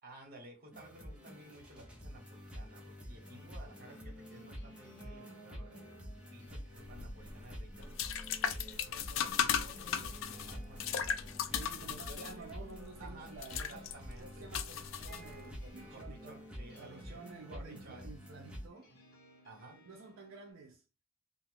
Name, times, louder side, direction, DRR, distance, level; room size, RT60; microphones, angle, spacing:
voice 1, 0.0-6.0 6.3-7.9 8.5-11.3 11.8-12.3 13.0-14.5 15.9-17.2 17.5-18.1 19.4-19.8, right 1 dB, 45° right, 1.1 m, -55 dB
sound 1, 0.7-18.7, equal, 5° right, 0.7 m, -48 dB
sound 2, 1.4-20.5, right 1 dB, 50° left, 1.1 m, -59 dB
sound 3, 6.8-15.7, left 8 dB, 70° left, 0.4 m, -37 dB
voice 2, 11.5-13.9 14.2-16.4 16.8-18.9 19.9-20.8, right 4 dB, 70° right, 0.5 m, -51 dB
2.8 x 2.3 x 3.3 m
head